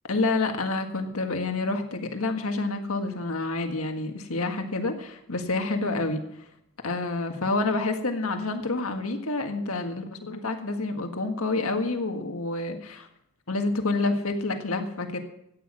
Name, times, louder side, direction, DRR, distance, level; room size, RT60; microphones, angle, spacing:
voice 1, 0.1-6.2 6.8-13.1 13.5-15.2, left 3 dB, 85° left, 5 dB, 1.7 m, -28 dB
14.0 x 9.5 x 6.2 m, 0.78 s
head